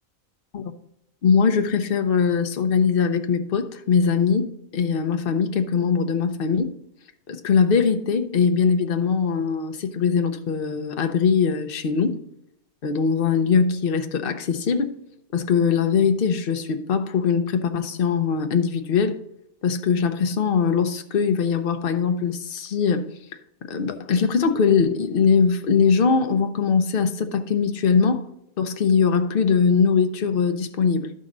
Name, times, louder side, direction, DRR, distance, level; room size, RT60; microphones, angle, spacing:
voice 1, 1.2-6.7 7.3-12.2 12.8-14.9 15.3-19.2 19.6-23.1 23.7-28.3 28.6-31.1, left 6 dB, 50° left, 0.9 m, -21 dB
12.0 x 5.3 x 3.8 m
omnidirectional pair, 1.4 m